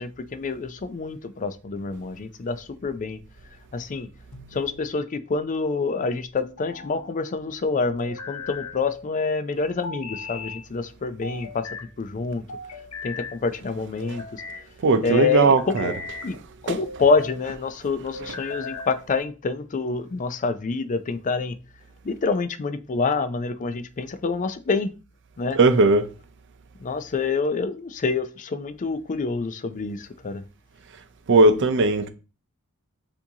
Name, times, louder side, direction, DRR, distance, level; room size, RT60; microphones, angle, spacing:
voice 1, 0.0-3.2 3.7-4.1 4.5-12.4 13.0-14.4 15.0-16.0 16.2-16.4 16.6-21.6 22.0-24.9 25.4-25.6 26.8-30.4, left 4 dB, 35° left, 0.4 m, -27 dB
sound 1, 4.3-5.0 6.4-7.1 8.0-8.8 9.8-10.6 11.2-11.9 12.5-13.4 14.0-14.6 15.4-16.3 16.9-17.4 18.1-19.0, left 3 dB, 75° left, 0.8 m, -37 dB
voice 2, 14.8-15.9 16.7-16.8 25.5-26.1 31.3-32.1, right 3 dB, 55° right, 0.6 m, -18 dB
7.1 x 2.6 x 2.8 m
head